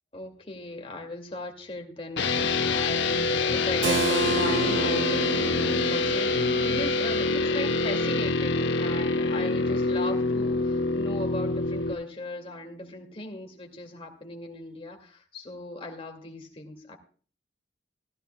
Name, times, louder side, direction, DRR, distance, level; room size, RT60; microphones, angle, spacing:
voice 1, 0.1-17.0, left 2 dB, 30° left, 3 dB, 2.3 m, -38 dB
sound 1, 2.2-11.9, left 3 dB, 70° left, 0.9 m, -25 dB
Keyboard (musical), 3.8-9.4, right 3 dB, 75° right, 0.6 m, -32 dB
16.0 x 15.0 x 2.3 m, 0.41 s
head